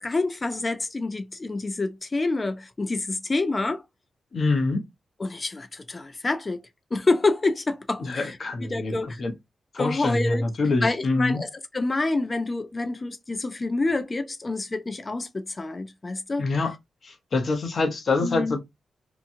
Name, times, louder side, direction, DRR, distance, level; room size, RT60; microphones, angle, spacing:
voice 1, 0.0-3.8 5.2-6.6 6.9-9.2 9.8-10.4 10.8-16.5 18.2-18.5, left 3 dB, 35° left, 0.5 m, -27 dB
voice 2, 4.3-4.8 8.0-9.3 9.7-11.4 16.4-16.7 17.0-18.6, left 3 dB, 60° left, 0.9 m, -25 dB
2.9 x 2.2 x 2.7 m
cardioid pair, 65°, 0 cm